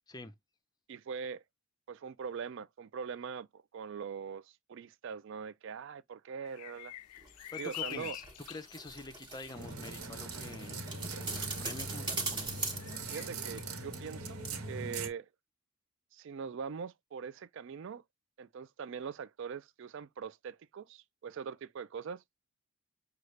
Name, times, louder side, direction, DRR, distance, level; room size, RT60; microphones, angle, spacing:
voice 1, 0.9-1.4 1.9-6.9 7.6-8.2 13.1-14.4 14.7-15.3 16.1-18.0 18.4-22.2, right 6 dB, 55° right, 0.3 m, -42 dB
sound 1, 6.4-9.6 10.4-10.6 11.0-11.1 12.1-12.2 12.6-13.3, left 16 dB, 85° left, 0.3 m, -45 dB
sound 2, 7.2-14.2 14.4-14.5, right 3 dB, 20° right, 1.0 m, -42 dB
voice 2, 7.5-10.8 11.1-12.5, left 2 dB, 20° left, 0.5 m, -46 dB
sound 3, 9.5-15.1, right 3 dB, 75° right, 1.3 m, -41 dB
6.4 x 2.3 x 3.1 m
head